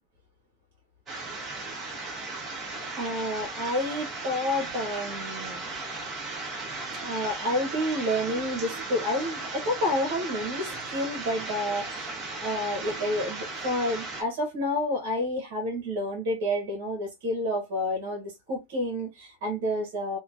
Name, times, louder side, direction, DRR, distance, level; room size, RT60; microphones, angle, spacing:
sound 1, 1.1-14.2, right 3 dB, 30° right, 1.3 m, -36 dB
voice 1, 2.9-5.6 7.0-20.2, left 1 dB, 65° right, 1.1 m, -29 dB
2.9 x 2.3 x 2.6 m
hypercardioid pair, 100°, 0 cm